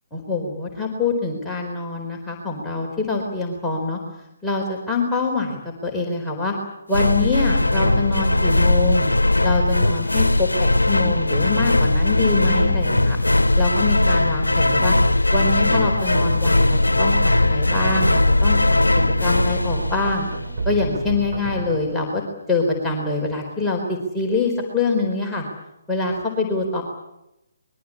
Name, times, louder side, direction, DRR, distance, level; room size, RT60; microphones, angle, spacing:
voice 1, 0.1-4.0 4.4-6.5 6.9-9.1 9.4-13.2 13.5-14.9 15.3-18.8 19.2-20.3 20.6-22.2 22.5-25.4 25.9-26.8, left 3 dB, 5° left, -4 dB, 4.4 m, -24 dB
sound 1, 6.9-20.5, left 2 dB, 85° left, 1.0 m, -19 dB
sound 2, 12.3-21.8, right 3 dB, 50° right, 7.7 m, -32 dB
25.0 x 22.5 x 8.7 m, 0.88 s
figure-of-eight pair, 140°, 0 cm